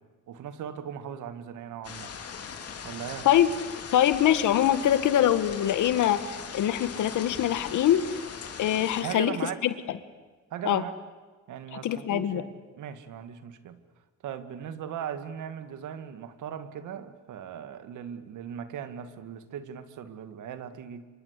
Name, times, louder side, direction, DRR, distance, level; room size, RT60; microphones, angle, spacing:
voice 1, 0.3-2.1 2.8-3.3 9.0-9.6 10.5-10.9 11.5-12.5 12.8-13.8 14.2-21.0, right 8 dB, 80° right, 10 dB, 2.2 m, -38 dB
sound 1, 1.8-9.0, left 6 dB, 50° left, 3.4 m, -40 dB
voice 2, 3.9-8.0 8.6-9.4 9.6-9.7 10.7-10.8 11.8-12.4, left 11 dB, 80° left, 12 dB, 1.8 m, -23 dB
28.0 x 25.5 x 8.4 m, 1.3 s
cardioid pair, 90°, 30 cm